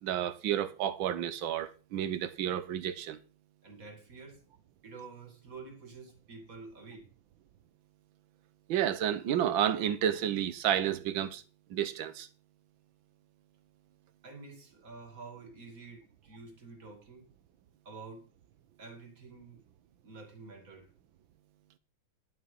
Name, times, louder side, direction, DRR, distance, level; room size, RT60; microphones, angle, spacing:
voice 1, 0.0-3.2 8.7-11.4 11.7-12.3, right 10 dB, 75° right, 1.7 m, -31 dB
voice 2, 3.6-4.4 4.8-7.1 14.2-17.3 17.8-18.3 18.8-19.6 20.0-20.9, right 4 dB, 45° right, 2.8 m, -49 dB
11.0 x 7.6 x 5.4 m
omnidirectional pair, 2.2 m